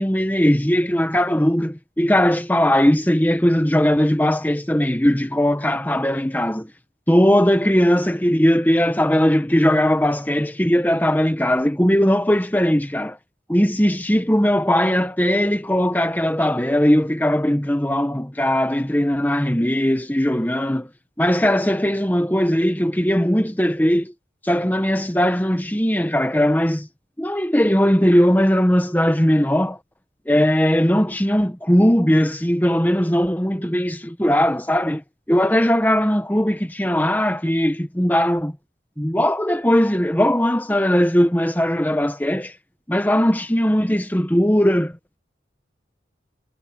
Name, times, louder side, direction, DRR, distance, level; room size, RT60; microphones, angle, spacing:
voice 1, 0.0-6.7 7.1-13.2 13.5-20.9 21.2-24.1 24.4-26.9 27.2-29.8 30.3-35.0 35.3-38.5 39.0-42.5 42.9-45.0, equal, 10° left, 1.1 m, -19 dB
head